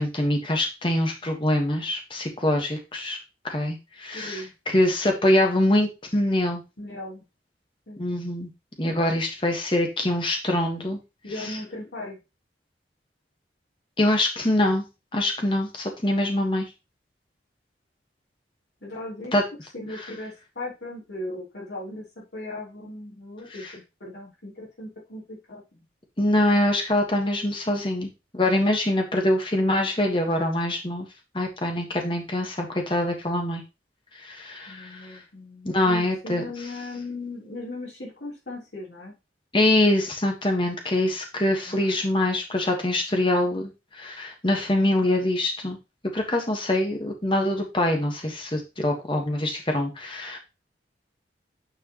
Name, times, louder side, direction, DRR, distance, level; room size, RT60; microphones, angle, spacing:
voice 1, 0.0-3.2 3.4-6.6 8.0-8.5 8.8-11.0 14.0-14.8 15.1-16.7 19.3-19.4 26.2-31.1 31.3-33.6 34.1-35.2 35.7-36.4 39.5-45.8 46.1-50.4, left 1 dB, 25° left, 3 dB, 1.5 m, -24 dB
voice 2, 4.1-4.5 6.8-7.2 7.9-8.0 11.2-12.2 18.8-19.3 19.7-25.8 34.6-39.1 41.6-42.0, left 2 dB, 70° left, -4 dB, 3.4 m, -38 dB
9.2 x 4.8 x 3.0 m, 0.26 s
head